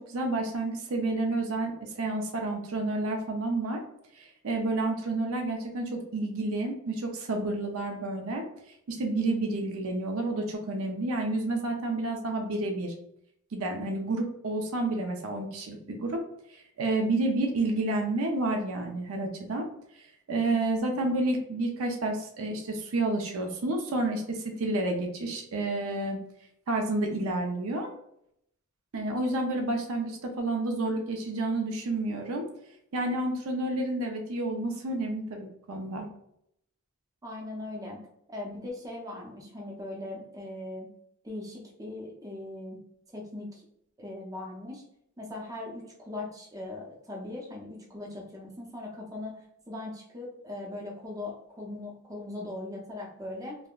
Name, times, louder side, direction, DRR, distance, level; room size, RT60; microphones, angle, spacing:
voice 1, 0.1-3.8 4.2-8.4 8.9-12.9 13.5-16.2 16.5-19.7 20.3-26.2 26.7-27.9 28.9-32.4 32.9-36.1, right 2 dB, 75° right, 3 dB, 0.5 m, -30 dB
voice 2, 37.2-38.0 38.3-40.9 41.2-42.8 43.1-43.6 44.0-44.8 45.2-49.4 49.7-53.6, left 2 dB, 15° right, -2 dB, 0.6 m, -39 dB
3.5 x 2.1 x 2.3 m, 0.75 s
head